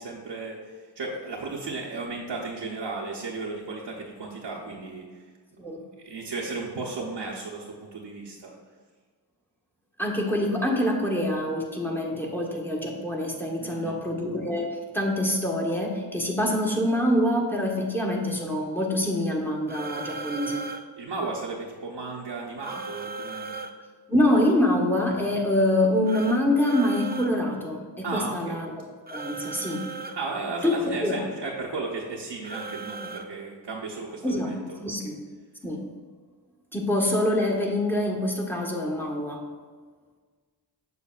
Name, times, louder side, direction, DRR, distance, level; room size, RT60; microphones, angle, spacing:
voice 1, 0.0-5.2 5.7-8.5 13.6-14.0 21.0-23.6 28.0-28.6 30.2-34.8, right 3 dB, 85° right, -4 dB, 0.9 m, -35 dB
voice 2, 10.0-20.6 24.1-28.7 29.1-29.8 30.6-31.3 34.2-34.5 34.8-35.1 35.6-35.8 36.7-39.4, left 1 dB, 5° left, -1 dB, 1.4 m, -25 dB
sound 1, 19.7-20.8 22.6-23.7 26.1-27.3 29.1-30.2 32.4-33.3, right 3 dB, 25° right, 0.5 m, -37 dB
7.0 x 6.6 x 2.4 m, 1.5 s
cardioid pair, 50°, 42 cm